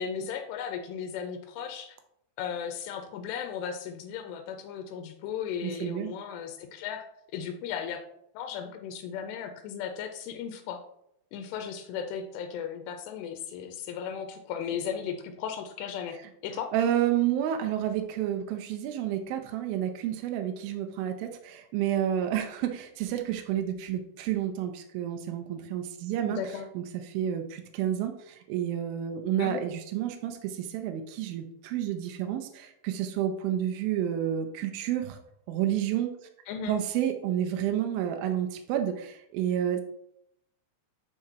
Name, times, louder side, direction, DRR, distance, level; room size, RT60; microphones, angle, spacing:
voice 1, 0.0-2.0 2.4-7.0 7.3-8.0 8.4-10.8 11.3-16.2 16.4-16.7 26.3-26.7 29.4-29.6 36.5-36.8, left 7 dB, 85° left, 6 dB, 2.7 m, -36 dB
voice 2, 5.6-6.1 16.7-26.4 26.8-35.2 35.5-36.1 36.7-39.8, right 10 dB, 85° right, 5 dB, 2.1 m, -30 dB
7.4 x 5.8 x 2.8 m, 0.76 s
omnidirectional pair, 4.8 m